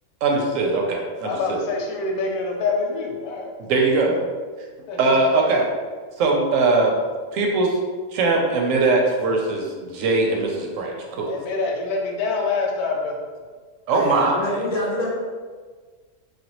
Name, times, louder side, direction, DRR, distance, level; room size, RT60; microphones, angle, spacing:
voice 1, 0.2-1.6 3.7-4.1 5.0-5.6 6.2-7.0 7.3-7.8 8.1-11.3 13.9-14.6, right 3 dB, 70° right, 0 dB, 0.9 m, -21 dB
voice 2, 1.2-3.5 4.9-5.2 11.3-13.2, left 3 dB, 85° left, 0 dB, 1.1 m, -26 dB
voice 3, 13.9-15.1, left 1 dB, 40° left, -6 dB, 0.6 m, -26 dB
3.3 x 2.3 x 2.9 m, 1.5 s
omnidirectional pair, 1.6 m